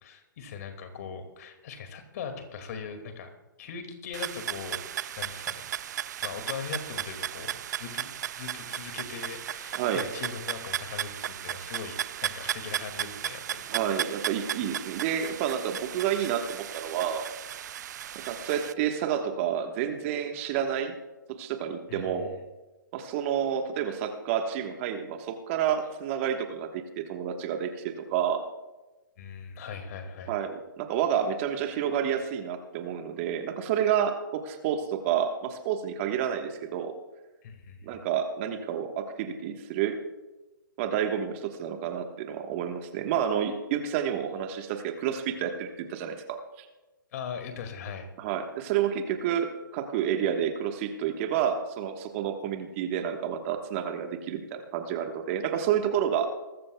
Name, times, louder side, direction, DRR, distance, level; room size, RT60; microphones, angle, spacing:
voice 1, 0.0-3.3 3.6-4.9 5.2-5.7 6.2-8.1 8.4-13.7 13.9-14.2 21.9-22.3 29.2-30.3 37.4-38.0 47.1-48.1, left 6 dB, 50° left, 6 dB, 2.2 m, -40 dB
sound 1, 4.1-18.7, right 10 dB, 55° right, 0.5 m, -35 dB
voice 2, 9.7-10.0 13.7-17.3 18.2-20.9 21.3-22.3 22.9-28.4 30.3-36.9 37.8-40.0 40.8-46.7 48.2-56.3, right 9 dB, 35° right, 5 dB, 1.4 m, -29 dB
22.0 x 13.5 x 2.3 m, 1.1 s
figure-of-eight pair, 130°, 11 cm